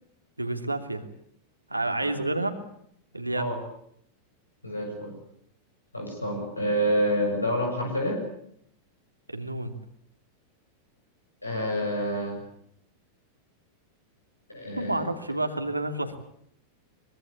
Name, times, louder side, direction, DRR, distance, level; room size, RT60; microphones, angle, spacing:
voice 1, 0.4-1.0 1.7-2.6 3.1-3.6 9.3-9.8 14.7-16.2, right 2 dB, 85° right, 6 dB, 2.8 m, -29 dB
voice 2, 4.6-5.1 5.9-8.2 11.4-12.4 14.5-15.1, equal, 85° left, 1 dB, 7.3 m, -28 dB
24.0 x 24.0 x 8.5 m, 0.68 s
figure-of-eight pair, 90°, 0 cm